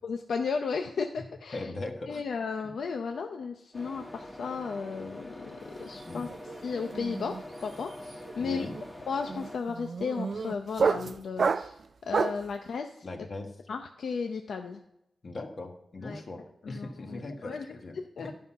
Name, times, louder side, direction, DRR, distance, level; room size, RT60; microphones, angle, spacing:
voice 1, 0.0-1.7 2.1-6.3 6.6-8.6 9.1-11.8 12.0-12.9 13.7-14.8 16.0-16.2 16.6-17.7 18.2-18.3, left 5 dB, 80° left, 5 dB, 0.6 m, -34 dB
voice 2, 1.5-2.2 6.1-6.3 8.4-8.7 13.0-13.6 15.2-18.3, left 2 dB, 40° left, 4 dB, 1.3 m, -39 dB
sound 1, 3.7-9.6, left 1 dB, 5° left, 1.2 m, -44 dB
sound 2, 5.7-6.0 6.3-12.5, right 5 dB, 55° right, 0.3 m, -31 dB
12.0 x 5.6 x 5.7 m, 0.81 s
wide cardioid pair, 155°, 0 cm